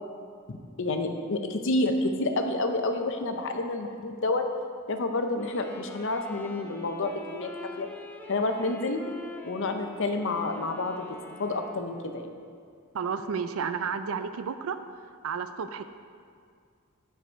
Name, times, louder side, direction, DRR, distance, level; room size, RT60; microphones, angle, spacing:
voice 1, 0.5-4.4 4.9-7.5 7.8-7.9 8.3-9.0 9.4-11.1 11.4-12.3, left 2 dB, 60° left, 6 dB, 0.7 m, -29 dB
Wind instrument woodwind instrument, 5.3-12.2, left 2 dB, 10° left, 0.7 m, -45 dB
voice 2, 12.9-14.8 15.2-15.8, right 6 dB, 70° right, 10 dB, 0.4 m, -31 dB
10.0 x 4.7 x 4.5 m, 2.2 s
head